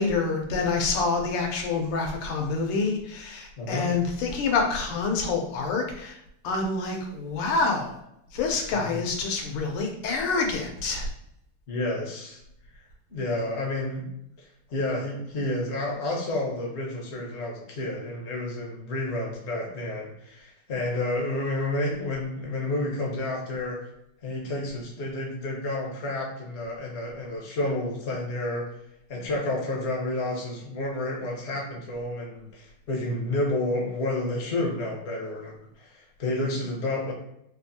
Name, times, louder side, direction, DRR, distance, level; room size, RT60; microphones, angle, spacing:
voice 1, 0.0-6.2 6.4-7.9 8.3-11.1, left 4 dB, 90° left, 2 dB, 1.7 m, -27 dB
voice 2, 3.6-3.9 8.7-9.0 11.7-12.4 12.7-12.8 13.1-14.1 14.4-23.9 24.2-28.6 29.1-37.1, left 2 dB, 55° left, -2 dB, 0.7 m, -30 dB
3.9 x 2.5 x 2.7 m, 0.76 s
omnidirectional pair, 2.4 m